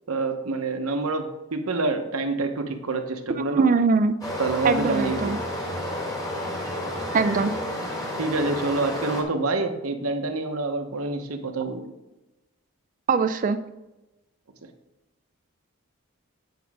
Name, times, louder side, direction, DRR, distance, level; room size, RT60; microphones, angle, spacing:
voice 1, 0.1-3.7 4.4-5.4 8.2-11.9, right 3 dB, 80° right, 6 dB, 0.9 m, -27 dB
voice 2, 3.4-4.2 4.6-5.4 7.1-7.6 13.1-13.6, right 4 dB, 35° right, 11 dB, 0.3 m, -22 dB
Stream, 4.2-9.2, left 1 dB, 15° left, 1.4 m, -31 dB
9.3 x 5.9 x 3.6 m, 1.0 s
head